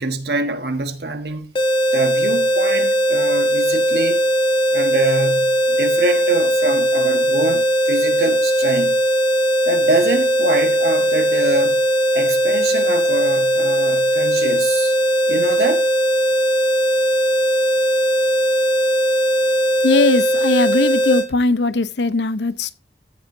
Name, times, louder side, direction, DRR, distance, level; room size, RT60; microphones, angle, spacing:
voice 1, 0.0-1.5 1.9-4.2 4.7-8.9 9.6-11.8 12.1-14.9 15.3-15.9, right 2 dB, 60° right, 1.3 m, -24 dB
sound 1, 1.5-21.3, right 1 dB, 25° left, 1.4 m, -18 dB
voice 2, 19.8-22.7, left 3 dB, 70° left, 0.7 m, -19 dB
14.5 x 7.4 x 2.6 m
head